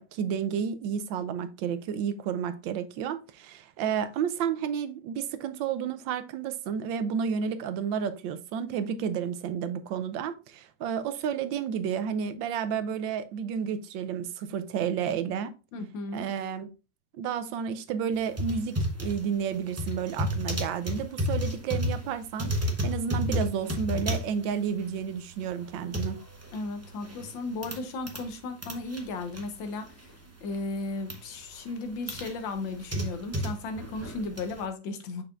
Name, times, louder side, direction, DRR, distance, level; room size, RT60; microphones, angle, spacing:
voice 1, 0.0-15.5 16.1-16.7 17.2-26.2, right 7 dB, 85° right, 1.4 m, -31 dB
voice 2, 15.7-16.3 26.5-30.1 30.4-35.2, left 3 dB, 90° left, 1.7 m, -35 dB
sound 1, 18.2-28.3 28.6-30.2 30.5-31.2 31.7-34.6, equal, 15° right, 0.5 m, -33 dB
6.8 x 5.6 x 2.4 m
omnidirectional pair, 2.0 m